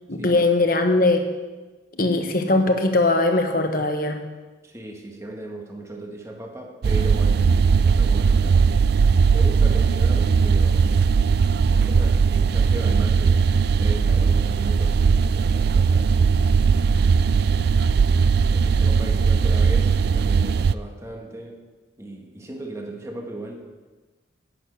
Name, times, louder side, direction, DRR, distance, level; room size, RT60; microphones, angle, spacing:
voice 1, 0.1-1.3 1.9-4.2, left 2 dB, 50° left, 5 dB, 1.2 m, -20 dB
voice 2, 4.6-7.5 7.7-8.8 9.3-11.0 11.7-13.5 13.8-16.4 18.5-21.6 22.0-23.6, right 1 dB, 15° right, 2 dB, 1.5 m, -37 dB
sound 1, 6.8-20.7, right 5 dB, 55° right, 0.3 m, -19 dB
11.0 x 9.1 x 6.3 m, 1.3 s
head